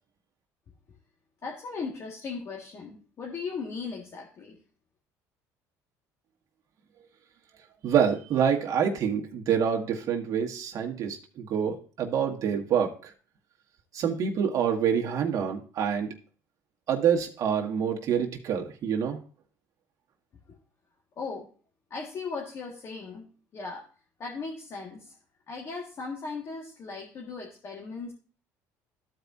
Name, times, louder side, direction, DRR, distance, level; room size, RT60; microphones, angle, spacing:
voice 1, 1.4-4.5 21.2-21.4 21.9-23.3 23.5-23.8 24.2-25.1 25.5-28.1, left 4 dB, 40° left, -2 dB, 1.7 m, -37 dB
voice 2, 7.8-13.1 13.9-16.1 16.9-19.2, right 8 dB, 50° right, 1 dB, 1.6 m, -26 dB
14.0 x 4.8 x 2.6 m, 0.40 s
cardioid pair, 110°, 7 cm